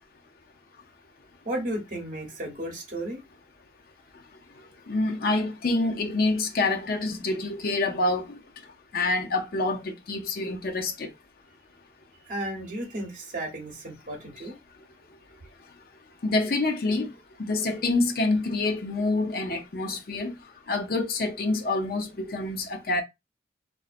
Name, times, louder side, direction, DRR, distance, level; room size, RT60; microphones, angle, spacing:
voice 1, 1.4-3.2 12.3-14.6, right 1 dB, 50° right, 0.9 m, -34 dB
voice 2, 4.9-8.3 8.9-11.1 16.2-17.1 17.4-20.4 20.7-23.0, left 2 dB, 55° left, 0.5 m, -27 dB
2.4 x 2.0 x 2.4 m
head